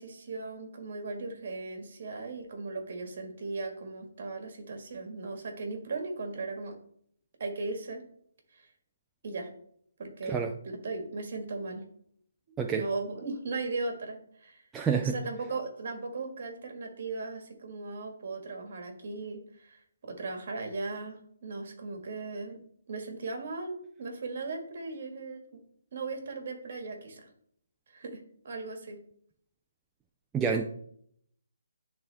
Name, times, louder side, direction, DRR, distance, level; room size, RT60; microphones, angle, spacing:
voice 1, 0.0-6.8 7.4-8.0 8.5-8.7 9.2-9.5 10.0-11.8 12.7-14.7 15.0-22.6 22.9-25.6 25.9-27.3 27.9-29.0, right 3 dB, 50° right, 4 dB, 1.7 m, -37 dB
voice 2, 14.7-15.1 30.3-30.7, right 6 dB, 10° right, 2 dB, 0.4 m, -28 dB
10.5 x 3.6 x 3.4 m, 0.65 s
hypercardioid pair, 165°, 0 cm